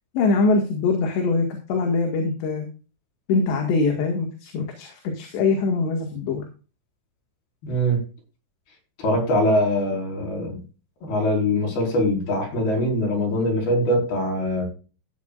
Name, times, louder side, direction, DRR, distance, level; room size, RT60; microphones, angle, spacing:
voice 1, 0.1-2.7 3.3-6.5, left 3 dB, 70° left, 2 dB, 4.0 m, -23 dB
voice 2, 7.6-8.0 9.0-10.6 11.0-14.7, equal, 55° left, 0 dB, 6.6 m, -22 dB
15.5 x 9.3 x 2.5 m, 0.34 s
omnidirectional pair, 5.2 m